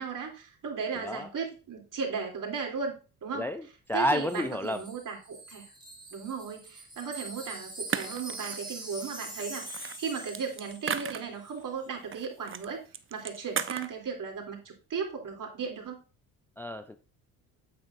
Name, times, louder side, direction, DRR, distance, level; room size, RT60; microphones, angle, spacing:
voice 1, 0.0-3.5 3.9-5.7 6.1-12.8 13.1-16.0, right 5 dB, 45° right, 1 dB, 3.3 m, -36 dB
voice 2, 3.3-3.6 3.9-4.8 16.6-17.0, left 1 dB, 5° left, 9 dB, 0.5 m, -30 dB
Wind chime, 3.9-11.2 11.4-11.6, right 2 dB, 10° right, 3.8 m, -44 dB
sound 1, 7.3-7.4 7.9-8.7 9.4-11.6 12.1-12.7 12.9-13.9, right 7 dB, 30° right, 0.8 m, -35 dB
8.7 x 8.6 x 2.6 m, 0.34 s
hypercardioid pair, 65°, 43 cm